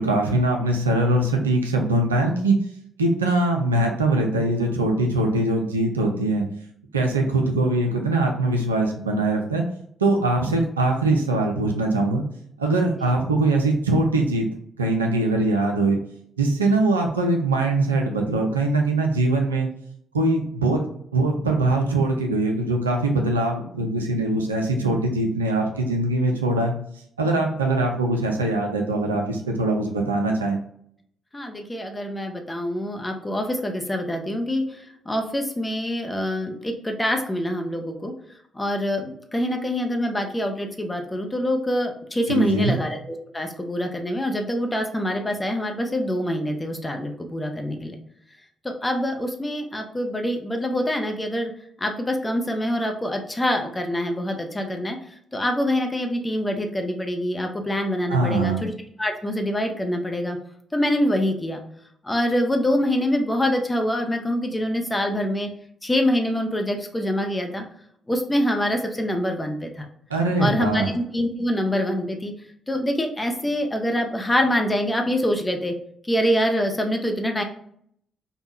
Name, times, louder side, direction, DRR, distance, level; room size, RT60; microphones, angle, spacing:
voice 1, 0.0-2.5 3.0-6.4 6.9-9.6 10.0-12.2 12.6-14.5 14.8-16.0 16.4-19.7 20.1-20.8 21.1-26.7 27.2-30.6 42.3-42.8 58.1-58.6 70.1-70.9, right 2 dB, 85° right, 2 dB, 0.3 m, -22 dB
voice 2, 31.3-38.1 38.5-48.0 48.6-51.5 51.8-55.0 55.3-58.7 59.0-60.4 60.7-61.6 62.0-65.5 65.8-67.6 68.1-69.9 70.4-72.3 72.7-75.7 76.1-77.4, left 1 dB, 15° left, 3 dB, 0.6 m, -25 dB
3.4 x 2.1 x 2.5 m, 0.68 s
figure-of-eight pair, 40°, 0 cm